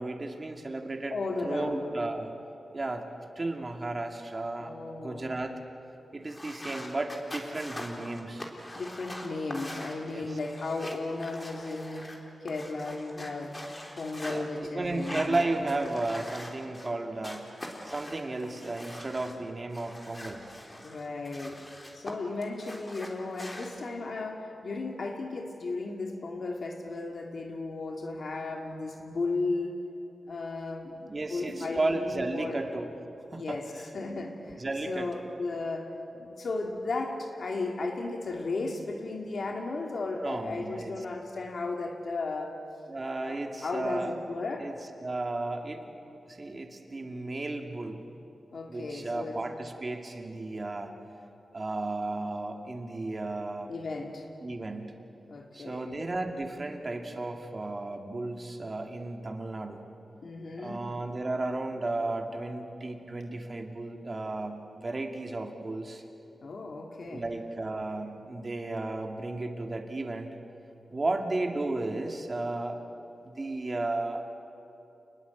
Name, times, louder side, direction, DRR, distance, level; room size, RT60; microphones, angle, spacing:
voice 1, 0.0-2.3 2.7-3.1 3.4-5.6 6.1-8.5 10.1-10.4 14.2-17.5 17.8-20.5 31.1-32.9 33.3-33.6 34.6-35.1 40.2-40.9 42.9-44.1 44.6-44.8 45.0-45.9 46.3-48.0 48.7-50.9 51.5-53.7 54.4-55.0 55.5-59.9 60.6-66.0 66.8-70.3 70.9-72.8 73.2-74.2, right 2 dB, 35° right, 4 dB, 2.5 m, -34 dB
voice 2, 1.1-1.8 4.6-5.3 8.7-12.1 12.4-13.6 14.0-15.7 20.8-21.6 21.9-29.8 30.3-32.6 33.3-34.6 34.9-35.9 36.2-42.6 43.2-44.7 48.5-49.4 53.7-54.3 55.3-55.9 60.2-60.8 66.4-67.3, left 3 dB, 65° left, 2 dB, 2.3 m, -35 dB
sound 1, 6.2-14.4 14.9-16.9 17.2-19.3 19.7-22.1 22.4-23.7, left 1 dB, 25° left, 3.6 m, -43 dB
29.0 x 21.0 x 8.5 m, 2.9 s
wide cardioid pair, 90°, 0 cm